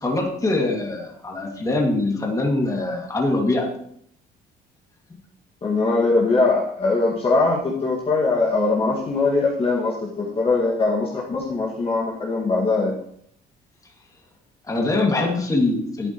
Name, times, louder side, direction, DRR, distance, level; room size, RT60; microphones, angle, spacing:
voice 1, 0.0-3.7 14.6-16.1, left 2 dB, 20° left, 0 dB, 2.4 m, -23 dB
voice 2, 5.6-12.9, left 3 dB, 35° left, -4 dB, 2.1 m, -21 dB
12.5 x 8.3 x 3.1 m, 0.66 s
cardioid pair, 110°, 17 cm